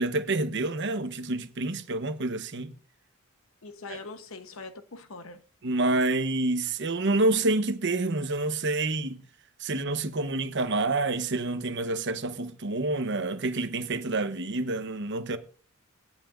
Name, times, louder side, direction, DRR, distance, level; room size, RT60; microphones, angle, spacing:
voice 1, 0.0-2.7 3.9-4.0 5.6-9.2 9.6-15.4, right 2 dB, 55° right, 0.9 m, -28 dB
voice 2, 3.6-5.4, left 3 dB, 65° left, 1.0 m, -42 dB
17.0 x 9.1 x 2.5 m
head